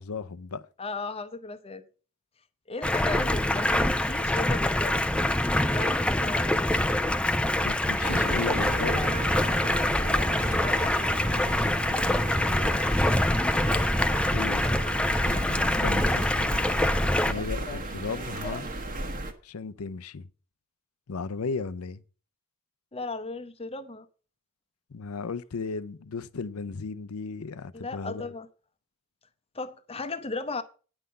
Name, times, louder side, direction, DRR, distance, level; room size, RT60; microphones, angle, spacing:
voice 1, 0.0-0.6 7.6-9.1 14.3-14.7 15.2-16.5 17.2-18.7 19.4-20.3 21.1-22.0 24.9-28.3, left 4 dB, 80° left, 0.6 m, -35 dB
voice 2, 0.8-1.8 2.7-5.1 5.7-6.9 10.0-11.5 17.4-18.6 22.9-24.1 27.7-28.5 29.5-30.6, left 3 dB, 25° left, 0.8 m, -37 dB
Stream, 2.8-17.3, left 1 dB, 5° left, 0.4 m, -25 dB
sound 1, 8.0-19.3, right 1 dB, 40° right, 1.3 m, -34 dB
9.7 x 5.8 x 6.6 m
head